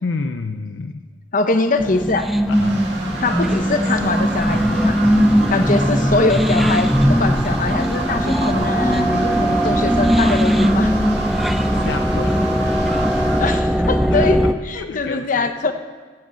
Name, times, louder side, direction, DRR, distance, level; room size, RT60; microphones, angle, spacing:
voice 1, 0.0-1.0 2.5-2.8 8.3-9.1 11.7-12.5 14.1-15.7, left 4 dB, 75° left, 8 dB, 0.5 m, -30 dB
voice 2, 1.3-2.3 3.2-5.0 5.5-10.9 13.4-15.7, left 3 dB, 50° left, 8 dB, 0.9 m, -22 dB
sound 1, 1.8-14.5, equal, ahead, 0.4 m, -19 dB
sound 2, 2.5-13.6, right 2 dB, 80° right, 2.4 m, -32 dB
sound 3, 4.0-13.4, right 4 dB, 60° right, 1.0 m, -34 dB
15.0 x 6.5 x 8.3 m, 1.5 s
head